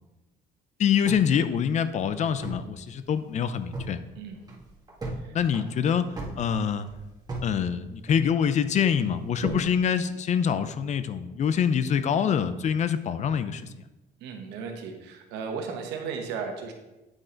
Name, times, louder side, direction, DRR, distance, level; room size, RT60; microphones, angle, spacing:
voice 1, 0.8-4.0 5.3-6.1 6.4-6.9 7.4-13.6, left 7 dB, 45° left, 12 dB, 0.5 m, -25 dB
sound 1, 1.0-2.7 3.0-3.1 3.5-4.0 4.4-5.2 5.5-7.5 7.8-8.5 9.0-9.7, right 2 dB, 25° right, 1.7 m, -36 dB
voice 2, 14.2-16.7, right 5 dB, 90° right, 3 dB, 1.1 m, -35 dB
8.8 x 3.8 x 4.4 m, 1.0 s
cardioid pair, 110°, 17 cm